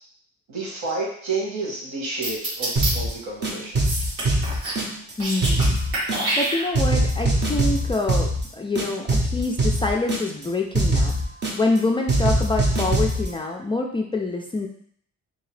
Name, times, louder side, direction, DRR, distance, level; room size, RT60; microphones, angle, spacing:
voice 1, 0.5-3.8, right 3 dB, 65° right, -3 dB, 1.4 m, -30 dB
sound 1, 2.2-2.9 3.8-4.8 5.1-5.7 5.9-7.0, right 1 dB, 85° right, 1.4 m, -26 dB
sound 2, 2.8-3.1 3.4-5.1 5.4-6.5 6.7-8.5 8.8-10.5 10.7-11.8 12.1-13.3, right 1 dB, 35° right, 0.8 m, -22 dB
voice 2, 5.2-6.1 6.4-11.2 11.6-14.7, left 3 dB, 15° left, 1 dB, 0.3 m, -26 dB
2.8 x 2.8 x 3.2 m, 0.62 s
cardioid pair, 90°, 30 cm